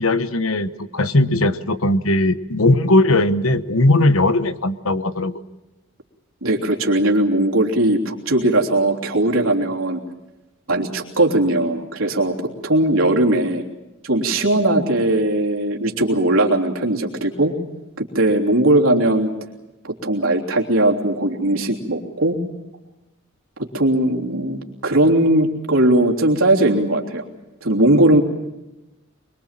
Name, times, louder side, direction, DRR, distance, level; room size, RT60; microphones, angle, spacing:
voice 1, 0.0-5.4, left 2 dB, 85° left, 11 dB, 1.2 m, -18 dB
voice 2, 6.4-10.0 10.7-12.3 12.6-13.6 14.0-17.5 18.0-19.3 19.8-22.4 23.7-27.2 27.6-28.2, right 1 dB, 80° right, 0 dB, 3.3 m, -18 dB
24.5 x 23.5 x 7.5 m, 0.99 s
head